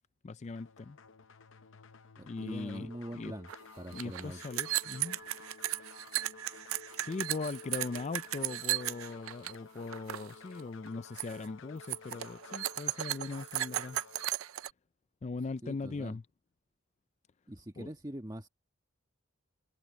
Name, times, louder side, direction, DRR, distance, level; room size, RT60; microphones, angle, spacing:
voice 1, 0.2-1.0 2.3-3.3 3.9-5.2 7.0-14.0 15.2-16.2 17.8-17.9, left 3 dB, 30° left, 0.4 m, -40 dB
sound 1, 0.6-14.3, left 5 dB, 65° left, 0.7 m, -53 dB
voice 2, 2.2-3.5 3.8-4.4 15.6-16.2 17.5-18.5, right 1 dB, 20° right, 1.4 m, -43 dB
sound 2, 3.5-3.6 3.8-9.6 9.8-10.3 10.6-10.9 11.2-11.5 11.8-14.7, right 14 dB, 85° right, 0.6 m, -35 dB
head